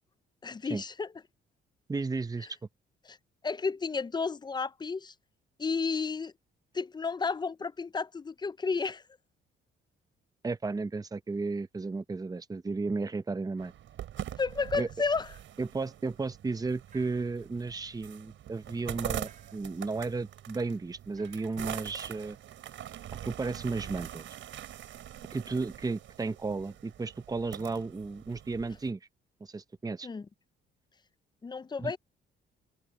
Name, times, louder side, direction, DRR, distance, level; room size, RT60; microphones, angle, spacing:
voice 1, 0.4-1.1 3.0-3.2 3.4-5.1 5.6-6.3 6.7-9.0 14.4-15.3 30.0-30.3 31.4-32.0, left 4 dB, 20° left, 0.5 m, -32 dB
voice 2, 1.9-2.5 10.4-13.7 14.8-14.9 15.6-22.4 23.2-24.2 25.3-29.0 29.4-30.1 31.8-31.9, right 3 dB, 20° right, 0.9 m, -34 dB
sound 1, 13.6-28.9, right 11 dB, 75° right, 7.2 m, -43 dB
sound 2, 16.9-17.5 19.2-19.7 21.2-21.6, right 6 dB, 40° right, 6.3 m, -59 dB
open air
cardioid pair, 90°, 20 cm